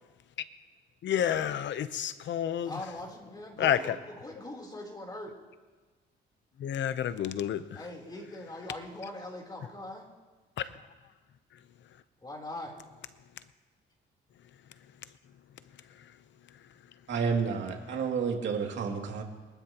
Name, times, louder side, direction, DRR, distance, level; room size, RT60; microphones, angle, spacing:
voice 1, 1.0-2.7 3.6-4.0 6.6-7.6 10.6-10.7, left 10 dB, 65° left, 0.8 m, -29 dB
voice 2, 2.6-5.3 7.7-10.1 12.2-12.7, left 1 dB, 20° left, 3.6 m, -41 dB
voice 3, 17.1-19.2, right 5 dB, 65° right, 2.5 m, -30 dB
23.5 x 12.0 x 3.0 m
cardioid pair, 90°, 20 cm